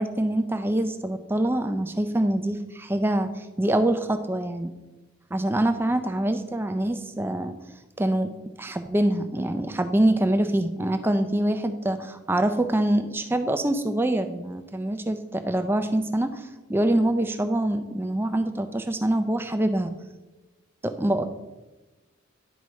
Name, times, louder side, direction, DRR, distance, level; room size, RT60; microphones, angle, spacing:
voice 1, 0.0-4.7 5.3-7.5 8.0-8.3 8.6-19.9 20.8-21.2, right 1 dB, 10° right, 8 dB, 0.4 m, -25 dB
11.0 x 4.7 x 3.1 m, 1.1 s
head